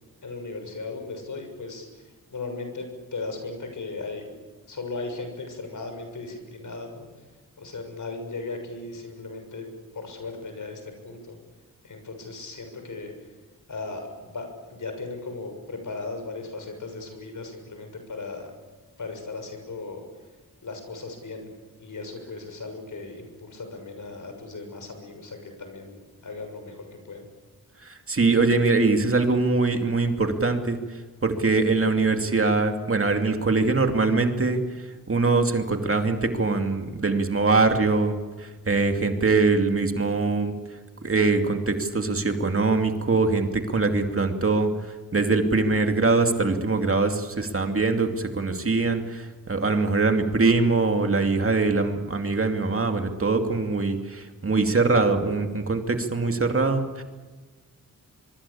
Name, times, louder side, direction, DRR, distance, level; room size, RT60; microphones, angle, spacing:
voice 1, 0.2-2.0 2.3-4.3 4.7-7.1 7.6-9.7 9.9-11.4 11.8-13.1 13.7-18.5 19.0-20.0 20.6-21.5 21.8-27.3, left 3 dB, 65° left, 6 dB, 6.7 m, -37 dB
voice 2, 27.8-30.8 31.2-34.6 35.1-40.5 41.0-44.7 45.1-57.0, right 3 dB, 40° right, 5 dB, 2.5 m, -23 dB
24.5 x 24.0 x 8.6 m, 1.3 s
wide cardioid pair, 100°, 34 cm